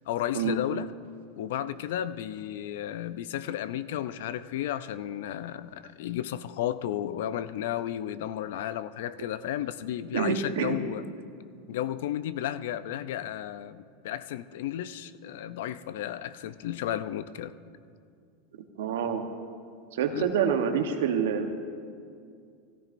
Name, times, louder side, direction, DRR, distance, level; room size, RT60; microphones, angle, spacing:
voice 1, 0.1-0.9 1.4-11.0 11.7-17.5 20.1-20.3, left 11 dB, 75° left, 14 dB, 0.5 m, -33 dB
voice 2, 10.1-10.8 18.8-19.3 19.9-21.5, right 7 dB, 85° right, 6 dB, 1.0 m, -27 dB
16.5 x 14.0 x 2.6 m, 2.3 s
supercardioid pair, 150°, 0 cm